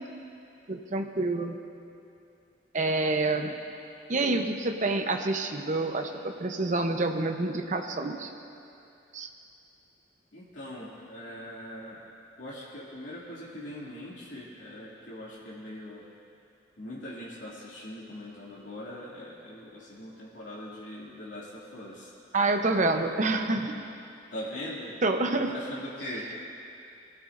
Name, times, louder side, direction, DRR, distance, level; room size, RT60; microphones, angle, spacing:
voice 1, 0.7-1.6 2.7-3.5 4.1-8.3 9.1-9.3 22.3-23.8 25.0-25.5, right 2 dB, 40° right, 5 dB, 0.8 m, -27 dB
voice 2, 10.3-12.0 12.4-16.0 16.8-22.1 22.9-23.4 24.3-24.9 25.3-26.3, left 1 dB, 85° left, -8 dB, 2.6 m, -41 dB
21.5 x 15.0 x 2.6 m, 2.6 s
head